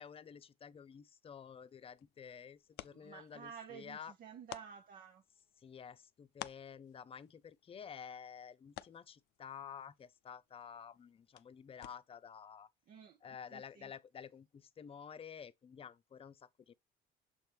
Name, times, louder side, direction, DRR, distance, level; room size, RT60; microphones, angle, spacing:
voice 1, 0.0-4.1 5.6-12.7 13.2-16.7, left 7 dB, 35° left, 0.6 m, -51 dB
sound 1, 1.6-12.3, left 16 dB, 85° left, 0.4 m, -56 dB
voice 2, 2.8-5.2 12.9-13.2 13.5-13.9, right 7 dB, 55° right, 0.8 m, -52 dB
7.1 x 4.3 x 3.4 m
cardioid pair, 110°, 17 cm